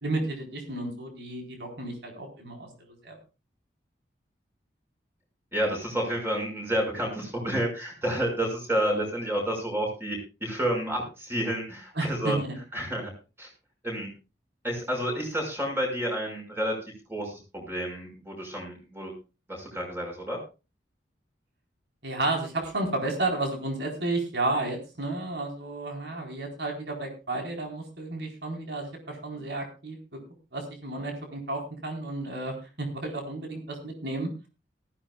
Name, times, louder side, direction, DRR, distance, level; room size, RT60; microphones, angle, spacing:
voice 1, 0.0-2.7 3.0-3.2 11.9-12.6 22.0-30.0 30.5-34.5, right 2 dB, 70° right, 2 dB, 4.2 m, -32 dB
voice 2, 5.5-12.4 12.7-13.1 13.4-13.5 13.8-14.1 14.6-16.7 17.1-19.1 19.5-20.4, right 1 dB, 15° right, 1 dB, 5.6 m, -30 dB
18.5 x 14.5 x 2.4 m, 0.30 s
head